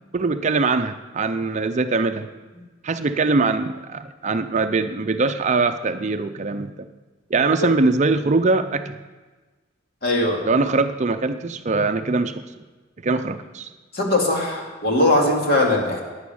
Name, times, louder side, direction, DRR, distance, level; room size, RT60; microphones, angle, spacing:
voice 1, 0.1-2.3 2.8-6.7 7.3-9.0 10.4-12.4 13.0-13.7, right 3 dB, 35° right, 9 dB, 0.5 m, -22 dB
voice 2, 10.0-10.4 13.9-16.0, left 1 dB, 55° left, 0 dB, 2.3 m, -20 dB
11.0 x 9.6 x 7.0 m, 1.3 s
head